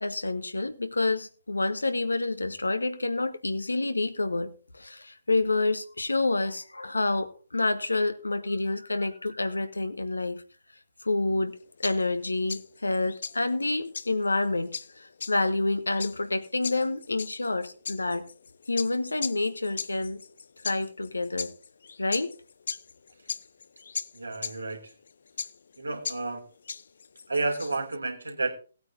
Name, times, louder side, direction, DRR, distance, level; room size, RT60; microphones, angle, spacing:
voice 1, 0.0-10.4 11.0-18.2 18.7-20.2 20.6-21.5 22.0-22.3, left 2 dB, 75° left, 1.3 m, -28 dB
sound 1, 11.5-28.0, left 5 dB, 60° left, 0.5 m, -39 dB
voice 2, 24.1-24.9 25.8-26.5 27.3-28.6, right 3 dB, 75° right, 2.9 m, -31 dB
18.5 x 8.9 x 2.8 m
figure-of-eight pair, 130°, 0 cm